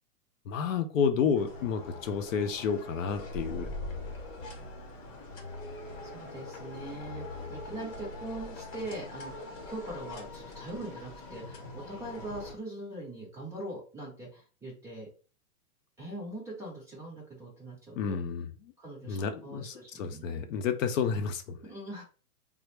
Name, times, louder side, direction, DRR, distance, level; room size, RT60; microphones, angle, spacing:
voice 1, 0.5-3.7 18.0-18.5 19.1-21.6, left 6 dB, 60° left, 7 dB, 0.5 m, -30 dB
sound 1, 1.3-12.5, left 2 dB, 30° left, 0.9 m, -42 dB
voice 2, 6.0-7.2 7.5-15.1 16.0-18.2 18.8-20.5 21.6-22.0, right 1 dB, 5° right, -3 dB, 0.6 m, -42 dB
3.3 x 2.0 x 3.1 m, 0.35 s
hypercardioid pair, 145°, 46 cm